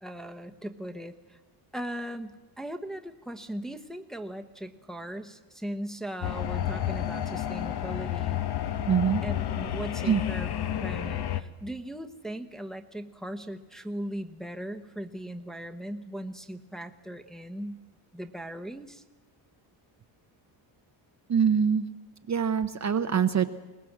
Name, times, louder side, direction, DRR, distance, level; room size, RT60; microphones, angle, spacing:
voice 1, 0.0-1.4 1.7-8.4 8.9-9.0 9.2-10.5 10.8-17.8 18.1-19.0, right 1 dB, ahead, 4 dB, 1.0 m, -38 dB
sound 1, 6.2-11.4, left 11 dB, 50° left, 1.0 m, -31 dB
voice 2, 8.9-9.2 10.0-10.2 21.3-21.9 22.3-23.5, right 7 dB, 35° right, 8 dB, 0.8 m, -24 dB
21.5 x 18.5 x 7.4 m, 1.2 s
cardioid pair, 115°, 50 cm